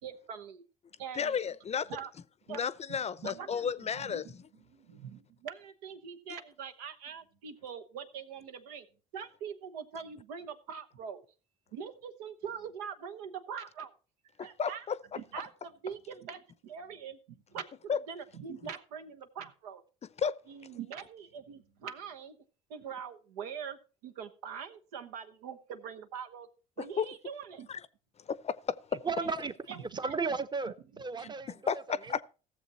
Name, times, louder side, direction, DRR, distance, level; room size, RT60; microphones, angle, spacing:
voice 1, 0.0-0.6 1.0-1.4 1.9-2.1 2.5-2.6 2.9-3.0 3.2-3.7 4.0-4.2 4.7-8.9 9.1-11.2 11.7-13.9 14.4-14.8 15.1-19.8 20.5-22.4 22.7-26.5 26.8-27.7 29.2-29.3 29.7-29.8 31.2-31.3, right 7 dB, 85° right, 1.0 m, -43 dB
voice 2, 1.1-1.9 2.5-4.2 14.4-15.0 17.9-18.0 20.2-20.3 27.0-27.1 27.7-27.8 28.3-29.1 31.7-32.2, left 7 dB, 35° left, 0.6 m, -32 dB
voice 3, 29.0-29.5 29.8-32.2, right 4 dB, 25° right, 0.9 m, -35 dB
16.0 x 7.1 x 4.1 m
hypercardioid pair, 65°, 19 cm